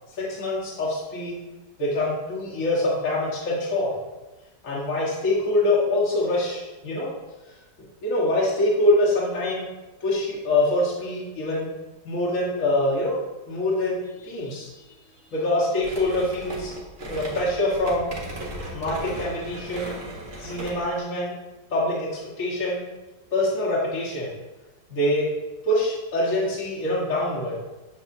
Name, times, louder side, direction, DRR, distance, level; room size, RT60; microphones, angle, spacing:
voice 1, 0.1-1.4 1.8-4.0 4.6-7.1 8.0-9.7 10.0-11.7 12.0-13.2 13.5-14.8 15.3-16.7 17.1-18.1 18.7-20.0 20.4-21.3 21.7-22.8 23.3-24.4 24.9-25.3 25.6-27.6, left 1 dB, 55° left, -7 dB, 1.9 m, -24 dB
sound 1, 15.8-21.0, right 1 dB, 50° right, 1.6 m, -36 dB
7.7 x 7.4 x 2.7 m, 1.1 s
omnidirectional pair, 1.7 m